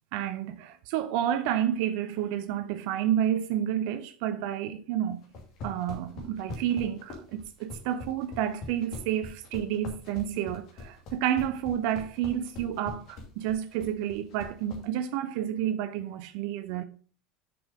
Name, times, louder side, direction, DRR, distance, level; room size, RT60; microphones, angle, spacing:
voice 1, 0.1-5.2 5.6-16.8, right 10 dB, 60° right, 0.6 m, -30 dB
sound 1, 5.2-14.8, left 3 dB, 50° left, 2.5 m, -42 dB
6.8 x 6.0 x 5.1 m
figure-of-eight pair, 70°, 0 cm